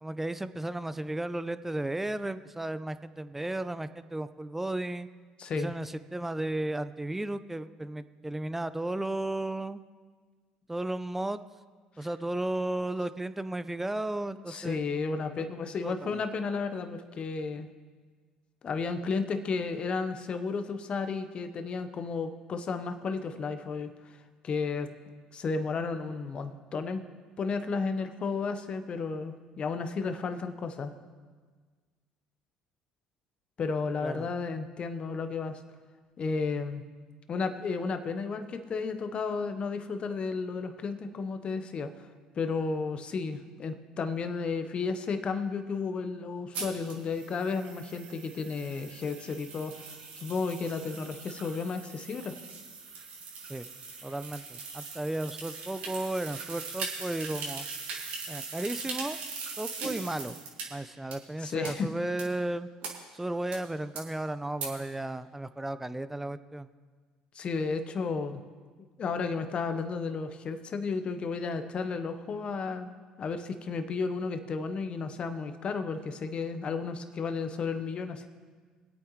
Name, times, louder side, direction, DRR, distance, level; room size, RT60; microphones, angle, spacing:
voice 1, 0.0-5.1 5.5-9.8 10.7-11.4 12.0-14.8 15.8-16.2 34.0-34.3 53.5-53.7 54.0-57.7 58.3-59.2 59.6-60.4 60.7-62.7 63.1-66.7, right 1 dB, 10° right, 13 dB, 0.6 m, -34 dB
voice 2, 5.4-5.7 14.5-17.7 18.6-23.9 24.4-24.9 25.3-27.0 27.4-30.9 33.6-35.6 36.2-36.8 37.3-41.9 42.4-49.9 50.2-52.3 61.4-61.9 67.3-68.4 69.0-78.3, left 4 dB, 45° left, 8 dB, 1.1 m, -33 dB
sound 1, 46.5-60.6 61.1-61.2 61.6-61.7 62.2-62.3 62.8-62.9 63.5-63.6 63.9-64.0 64.6-64.7, right 4 dB, 65° right, 2.5 m, -40 dB
24.0 x 8.7 x 3.2 m, 1.5 s
hypercardioid pair, 70°, 3 cm